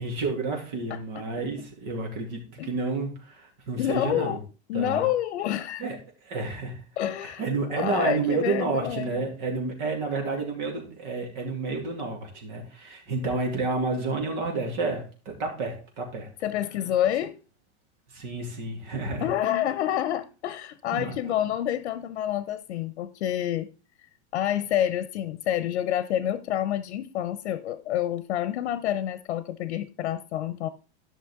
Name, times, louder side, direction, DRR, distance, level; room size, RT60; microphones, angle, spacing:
voice 1, 0.0-4.4 4.7-5.1 5.8-6.0 6.2-6.8 7.2-16.3 18.1-19.3 20.9-21.3, right 3 dB, 45° right, 2.7 m, -30 dB
voice 2, 3.8-4.4 4.7-5.9 7.0-7.4 7.7-9.4 16.4-17.4 19.2-23.7 24.3-30.7, left 11 dB, 90° left, 0.8 m, -28 dB
11.5 x 6.1 x 3.7 m
supercardioid pair, 175°, 33 cm